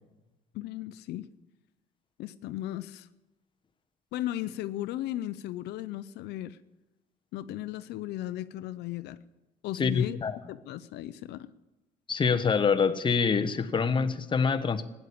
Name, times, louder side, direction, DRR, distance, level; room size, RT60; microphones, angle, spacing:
voice 1, 0.5-1.2 2.2-3.1 4.1-6.6 7.3-9.2 9.6-10.2 10.5-11.5, left 14 dB, 80° left, 13 dB, 0.6 m, -36 dB
voice 2, 9.8-10.4 12.1-14.9, left 5 dB, 30° left, 10 dB, 1.1 m, -26 dB
16.5 x 10.0 x 8.6 m, 1.0 s
cardioid pair, 110°, 17 cm